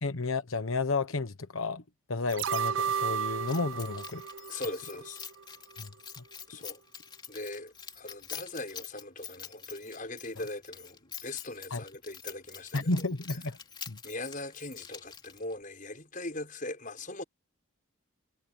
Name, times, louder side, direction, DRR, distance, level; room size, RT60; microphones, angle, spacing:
voice 1, 0.0-1.8 2.1-4.2 5.8-5.9 6.2-6.3 11.7-11.8 12.7-13.6 13.9-14.0, left 3 dB, 85° left, 1.2 m, -32 dB
sound 1, 2.3-5.4 5.8-5.9, right 7 dB, 70° right, 0.5 m, -33 dB
Keys jangling, 3.5-15.6, left 7 dB, 20° left, 3.2 m, -46 dB
voice 2, 4.5-5.2 6.5-6.8 7.3-12.9 14.0-17.2, left 2 dB, 40° left, 6.2 m, -40 dB
head